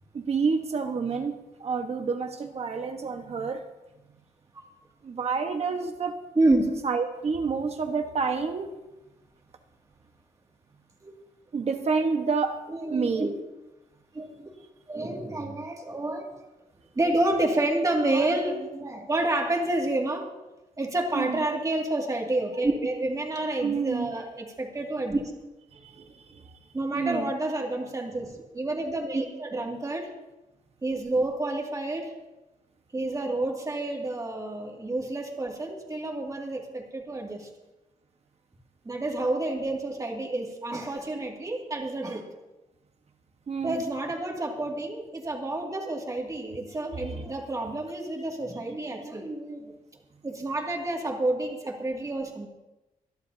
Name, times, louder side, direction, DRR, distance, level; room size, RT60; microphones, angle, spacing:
voice 1, 0.1-1.3 1.6-3.6 5.0-6.2 6.8-8.8 11.5-12.6 12.9-13.4 21.1-21.4 23.6-24.1 25.7-26.4 26.9-27.3 43.5-43.8 47.1-47.2, right 5 dB, 45° right, 5 dB, 1.3 m, -29 dB
voice 2, 6.4-6.7 11.0-11.1 12.7-13.3 14.1-14.5 14.9-16.3 16.9-20.3 20.8-25.2 26.7-30.1 30.8-32.1 32.9-37.5 38.8-42.3 43.6-49.7 50.2-52.5, right 2 dB, 25° right, 0 dB, 2.3 m, -29 dB
26.0 x 11.0 x 2.8 m, 1.0 s
wide cardioid pair, 140°, 15 cm